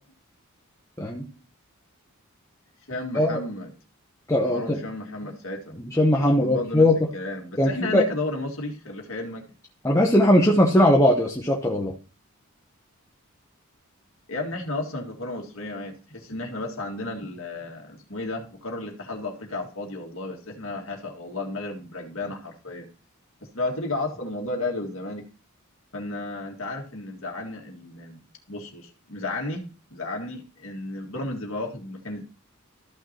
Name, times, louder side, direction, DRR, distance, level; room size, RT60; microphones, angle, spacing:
voice 1, 2.9-3.7 4.4-5.8 6.2-9.5 14.3-22.9 23.5-25.3 25.9-28.2 28.5-29.6 29.9-32.2, left 2 dB, 65° left, 1 dB, 2.1 m, -33 dB
voice 2, 4.3-4.8 5.9-6.9 7.6-8.0 9.8-11.9, left 1 dB, 15° left, 0 dB, 0.9 m, -19 dB
14.0 x 6.0 x 2.9 m, 0.34 s
head